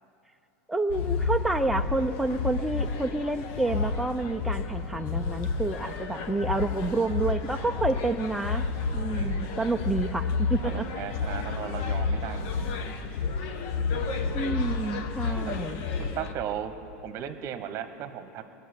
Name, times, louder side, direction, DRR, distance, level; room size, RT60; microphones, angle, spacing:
voice 1, 0.7-8.7 8.9-10.8 14.3-15.8, right 2 dB, ahead, 5 dB, 0.5 m, -29 dB
sound 1, 0.9-16.3, left 4 dB, 55° left, 1.0 m, -30 dB
voice 2, 9.1-9.6 10.6-12.7 15.5-15.6 16.0-16.7 17.0-18.5, right 10 dB, 40° right, 9 dB, 1.1 m, -36 dB
19.5 x 7.2 x 9.7 m, 2.8 s
supercardioid pair, 140°, 8 cm